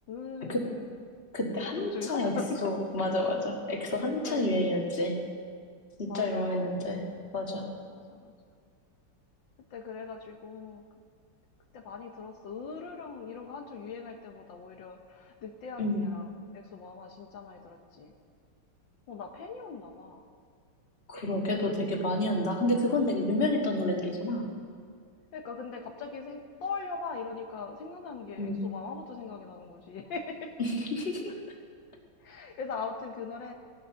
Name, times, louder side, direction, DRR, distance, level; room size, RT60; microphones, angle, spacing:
voice 1, 0.1-0.9 1.6-2.6 4.2-4.5 6.1-6.7 7.9-8.3 9.7-10.8 11.7-18.1 19.1-20.2 25.3-30.5 32.2-33.5, left 5 dB, 80° left, 3 dB, 1.8 m, -40 dB
voice 2, 1.3-2.3 2.6-5.2 6.0-7.8 15.8-16.1 21.1-24.5 28.4-28.6 30.6-31.3, left 1 dB, 30° left, 0 dB, 2.0 m, -29 dB
17.5 x 11.5 x 6.3 m, 2.1 s
omnidirectional pair, 2.0 m